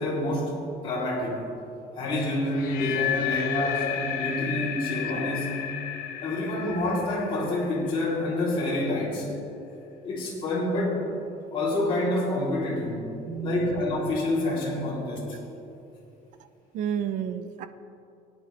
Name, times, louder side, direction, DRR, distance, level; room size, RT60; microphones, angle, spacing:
voice 1, 0.0-1.4 2.0-5.6 6.2-9.3 10.0-11.0 11.5-13.1 13.4-15.4, left 1 dB, 35° left, -6 dB, 3.1 m, -27 dB
sound 1, 2.5-8.5, left 9 dB, 70° left, 0.9 m, -33 dB
voice 2, 13.3-13.8 16.7-17.7, right 9 dB, 55° right, 11 dB, 0.6 m, -30 dB
19.5 x 9.8 x 3.3 m, 2.7 s
cardioid pair, 170°, 16 cm